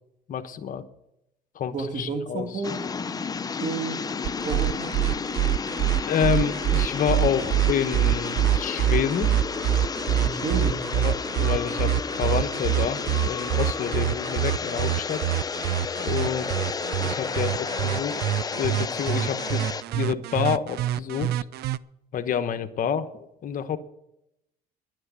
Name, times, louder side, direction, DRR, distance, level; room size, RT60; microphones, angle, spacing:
voice 1, 0.3-0.8 1.5-2.5 3.5-3.6 6.1-9.3 10.9-15.3 16.0-16.5 17.0-18.2 18.6-19.6 19.9-21.3 22.1-23.8, left 8 dB, 55° left, 9 dB, 1.1 m, -28 dB
voice 2, 1.7-2.8 3.6-4.2 4.4-4.9 10.2-10.8, right 3 dB, 50° right, 5 dB, 2.5 m, -31 dB
sound 1, 2.6-19.8, left 5 dB, 20° left, 0.5 m, -31 dB
sound 2, 4.2-21.8, right 13 dB, 75° right, 0.5 m, -25 dB
11.5 x 9.8 x 8.2 m, 0.82 s
cardioid pair, 110°, 17 cm